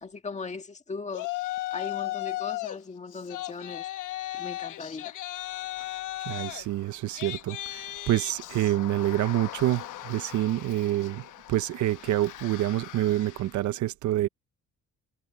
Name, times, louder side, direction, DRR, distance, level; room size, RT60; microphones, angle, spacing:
voice 1, 0.0-1.3 1.7-3.9 4.3-5.2, left 4 dB, 20° left, 1.8 m, -38 dB
Yell, 1.1-2.8 3.1-13.6, left 15 dB, 70° left, 1.1 m, -37 dB
voice 2, 6.3-14.3, right 14 dB, 65° right, 0.6 m, -27 dB
cardioid pair, 170°, 31 cm